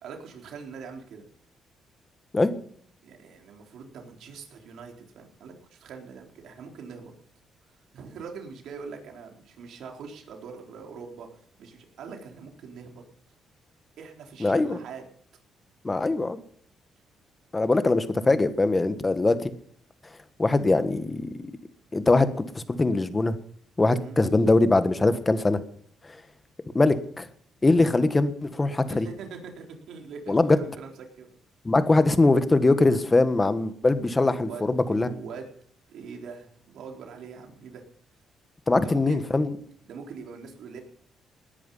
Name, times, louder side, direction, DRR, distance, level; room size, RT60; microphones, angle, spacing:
voice 1, 0.0-1.2 3.0-7.1 7.9-11.3 11.6-13.0 14.0-15.0 19.0-19.1 24.0-24.2 28.9-31.4 34.3-35.5 35.9-37.8 38.8-39.4 39.8-40.8, right 5 dB, 75° right, 2 dB, 4.0 m, -42 dB
voice 2, 14.4-14.8 15.8-16.4 17.5-19.4 20.4-21.3 21.9-22.3 22.5-23.3 23.8-25.6 26.7-27.2 27.6-29.1 30.3-30.6 31.6-35.1 38.7-39.5, left 2 dB, 20° left, 11 dB, 1.5 m, -22 dB
19.0 x 10.5 x 5.7 m, 0.63 s
cardioid pair, 90°, 0 cm